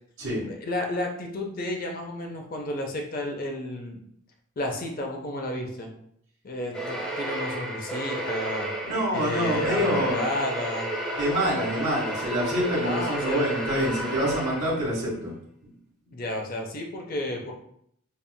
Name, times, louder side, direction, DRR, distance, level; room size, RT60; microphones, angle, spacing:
voice 1, 0.5-4.0 4.6-5.9 6.4-8.7 9.1-10.9 12.8-13.4 16.1-17.5, left 1 dB, 40° left, 2 dB, 0.5 m, -32 dB
sound 1, 6.7-15.0, right 1 dB, 5° left, 0.8 m, -32 dB
voice 2, 8.8-10.2 11.2-15.3, equal, 60° right, -9 dB, 1.2 m, -26 dB
5.3 x 2.4 x 2.2 m, 0.70 s
head